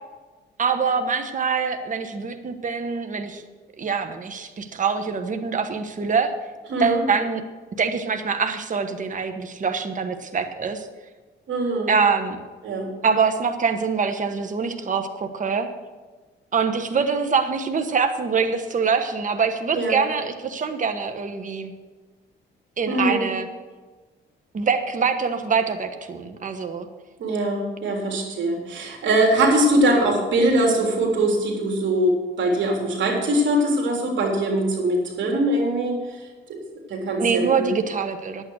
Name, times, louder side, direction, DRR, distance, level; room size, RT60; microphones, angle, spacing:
voice 1, 0.6-3.4 3.8-6.3 6.8-7.4 7.8-10.9 11.9-12.4 13.0-15.7 16.5-21.7 22.8-23.5 24.5-26.9 37.2-38.4, right 5 dB, 40° right, 7 dB, 1.3 m, -24 dB
voice 2, 6.7-7.0 11.5-11.9 12.6-12.9 19.7-20.0 22.9-23.2 27.2-36.2 36.5-36.6 36.9-37.7, right 1 dB, 70° right, 1 dB, 3.4 m, -22 dB
11.0 x 9.0 x 6.3 m, 1.3 s
cardioid pair, 90°, 20 cm